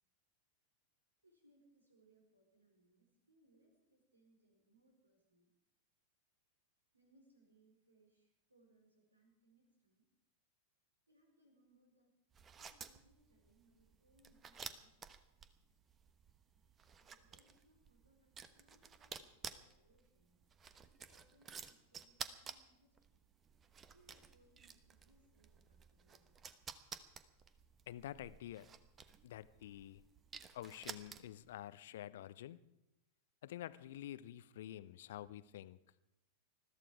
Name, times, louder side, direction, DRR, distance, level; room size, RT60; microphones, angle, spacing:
voice 1, 1.2-5.5 6.9-10.1 11.1-12.1 12.5-15.4 17.0-20.4 20.8-23.3 23.9-26.6, right 1 dB, 80° right, 2 dB, 4.4 m, -72 dB
sound 1, 12.3-31.5, right 6 dB, 25° right, 1.0 m, -53 dB
voice 2, 27.9-28.7 29.2-30.0 30.5-32.6 33.4-35.8, left 12 dB, 55° left, 17 dB, 0.7 m, -49 dB
20.5 x 14.0 x 4.8 m, 0.88 s
figure-of-eight pair, 90°, 0 cm